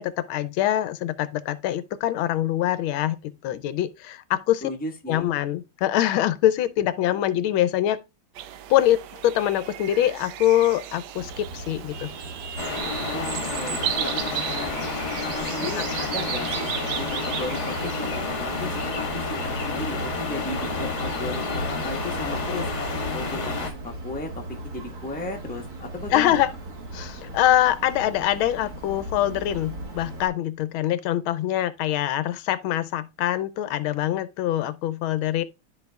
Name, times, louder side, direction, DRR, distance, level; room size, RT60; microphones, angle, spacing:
voice 1, 0.0-4.6 5.1-8.0 8.7-9.0 9.2-12.1 15.7-15.9 26.1-26.5 26.9-35.4, left 12 dB, 85° left, 1.4 m, -24 dB
voice 2, 4.6-5.3 13.1-14.9 15.2-22.7 23.1-26.4, left 2 dB, 5° left, 0.8 m, -35 dB
sound 1, 8.4-18.9, right 11 dB, 75° right, 1.0 m, -35 dB
Vehicle horn car horn honking, 11.2-30.3, right 1 dB, 45° right, 1.5 m, -37 dB
sound 2, 12.6-23.7, left 3 dB, 40° left, 1.3 m, -30 dB
13.0 x 4.6 x 2.3 m
omnidirectional pair, 2.3 m